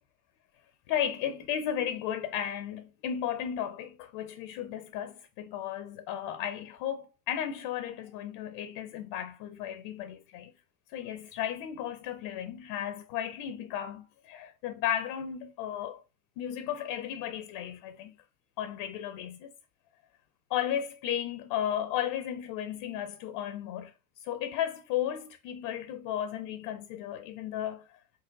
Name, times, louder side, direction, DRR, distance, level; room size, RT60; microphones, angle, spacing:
voice 1, 0.9-10.5 10.9-16.0 16.4-18.1 18.6-19.5 20.5-23.9 24.2-27.8, left 10 dB, 45° left, 0.5 m, -34 dB
4.0 x 3.9 x 2.5 m
hypercardioid pair, 80°, 46 cm